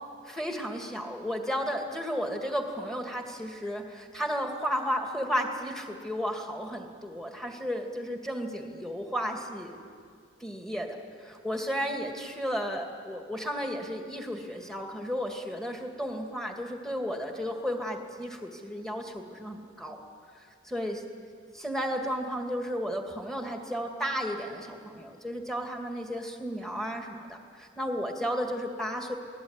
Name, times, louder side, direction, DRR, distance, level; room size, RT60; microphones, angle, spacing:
voice 1, 0.2-9.8 10.4-20.0 20.3-21.0 21.5-29.1, equal, ahead, 3 dB, 2.3 m, -33 dB
27.5 x 19.0 x 9.7 m, 2.2 s
head